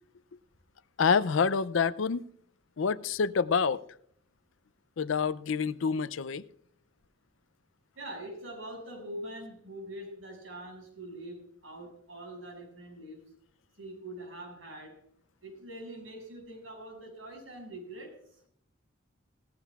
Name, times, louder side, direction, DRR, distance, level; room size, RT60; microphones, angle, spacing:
voice 1, 1.0-2.2 2.8-3.8 5.0-6.4, left 5 dB, 75° left, 17 dB, 0.5 m, -27 dB
voice 2, 7.9-13.2 13.8-15.0 15.4-18.2, right 1 dB, 80° right, 1 dB, 6.4 m, -43 dB
17.5 x 14.5 x 2.4 m, 0.64 s
head